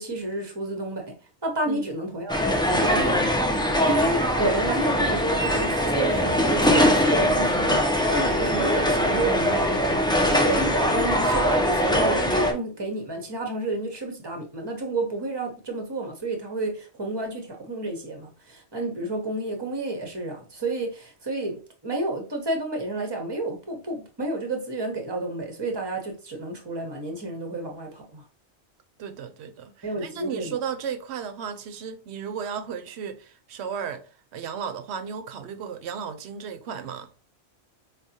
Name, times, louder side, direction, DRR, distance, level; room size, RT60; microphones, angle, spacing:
voice 1, 0.0-28.2 29.8-30.6, right 2 dB, 25° right, 0.8 m, -30 dB
sound 1, 2.3-12.5, equal, 10° left, 0.3 m, -22 dB
voice 2, 29.0-37.1, right 7 dB, 80° right, 0.8 m, -34 dB
4.8 x 2.3 x 2.7 m
omnidirectional pair, 1.1 m